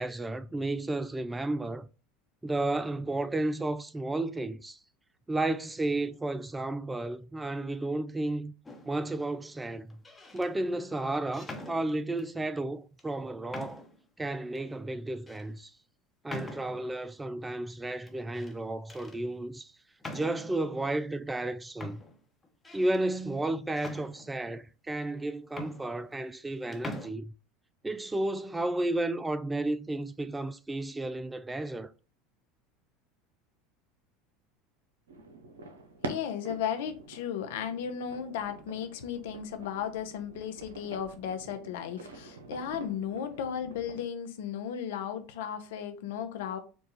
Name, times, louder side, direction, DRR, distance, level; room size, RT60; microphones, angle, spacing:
voice 1, 0.0-1.9 2.4-4.8 5.3-8.5 8.8-9.9 10.3-13.8 14.2-15.7 16.2-19.7 20.1-22.0 22.7-27.3 27.8-31.9, right 2 dB, 15° right, 0.4 m, -32 dB
sound 1, 8.7-9.1 9.9-10.5 11.3-12.3 13.0-13.1 13.5-14.0 14.6-14.7 15.3-15.5 16.3-17.0 18.1-18.6 18.9-19.2 20.0-20.6 21.4-21.5 21.8-23.0 23.8-24.6 25.2-25.3 25.5-26.5 26.7-27.1, left 2 dB, 15° left, 1.0 m, -44 dB
sound 2, 35.1-44.0, right 2 dB, 85° right, 0.7 m, -46 dB
voice 2, 36.0-46.6, left 8 dB, 75° left, 0.7 m, -35 dB
4.6 x 2.3 x 4.0 m
hypercardioid pair, 80°, 0 cm